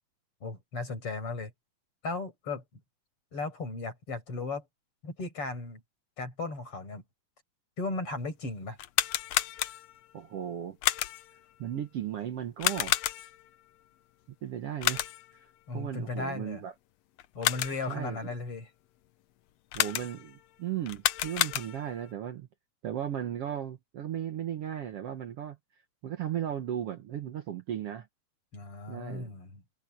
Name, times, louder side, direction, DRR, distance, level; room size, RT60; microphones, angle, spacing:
voice 1, 0.4-1.5 2.0-2.6 3.3-4.6 5.0-5.8 6.2-7.0 7.8-8.8 15.7-16.6 17.3-18.7 28.5-29.6, left 3 dB, 45° left, 6.7 m, -36 dB
sound 1, 8.7-10.1 10.8-11.4 12.6-13.5 14.8-15.4 17.2-18.0 19.7-20.4 20.9-22.0, left 13 dB, 70° left, 1.7 m, -30 dB
voice 2, 10.1-10.8 11.6-13.0 14.4-15.1 15.7-16.7 17.9-18.2 19.7-22.5 22.8-25.6 26.0-28.1 28.9-29.3, right 10 dB, 60° right, 1.9 m, -36 dB
omnidirectional pair, 3.5 m